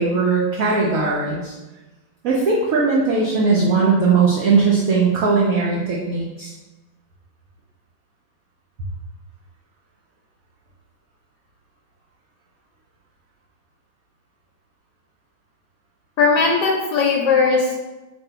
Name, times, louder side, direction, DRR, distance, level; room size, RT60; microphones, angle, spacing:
voice 1, 0.0-1.5 2.2-6.5, right 4 dB, 80° right, -3 dB, 0.7 m, -19 dB
voice 2, 16.2-17.8, left 4 dB, 70° left, -1 dB, 1.0 m, -18 dB
2.9 x 2.6 x 4.3 m, 1.1 s
omnidirectional pair, 2.1 m